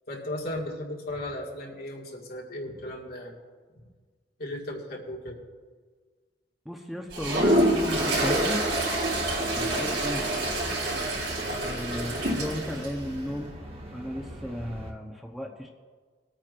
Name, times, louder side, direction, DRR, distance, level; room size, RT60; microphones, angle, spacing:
voice 1, 0.1-3.4 4.4-5.4 9.7-9.9, left 1 dB, 60° left, -2 dB, 1.8 m, -36 dB
voice 2, 6.6-8.6 9.5-10.2 11.6-13.5 13.9-15.7, equal, ahead, 1 dB, 0.8 m, -35 dB
Toilet flush, 7.1-12.9, right 1 dB, 80° right, 4.0 m, -26 dB
sound 1, 7.5-14.9, right 1 dB, 35° right, 1.1 m, -41 dB
22.5 x 9.0 x 2.5 m, 1.5 s
head